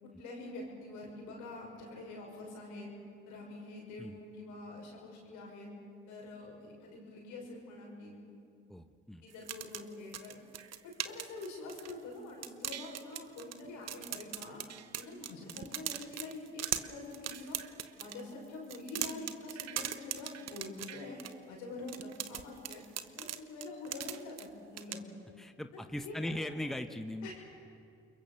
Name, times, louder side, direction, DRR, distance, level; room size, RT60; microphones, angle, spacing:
voice 1, 0.0-2.9 3.3-5.7 6.1-8.1 9.2-10.4 10.8-14.6 15.0-17.6 18.0-21.2 21.5-22.8 23.2-25.0 26.0-26.3 27.2-27.3, left 2 dB, 75° left, -1 dB, 6.4 m, -45 dB
voice 2, 8.7-9.2 25.4-27.3, left 1 dB, ahead, 8 dB, 1.3 m, -39 dB
sound 1, 9.3-12.1 12.4-13.6 13.9-18.2 18.6-21.3 21.9-24.5 24.8-25.0, right 10 dB, 55° right, 1.1 m, -40 dB
28.5 x 22.5 x 7.1 m, 2.5 s
hypercardioid pair, 50°, 30 cm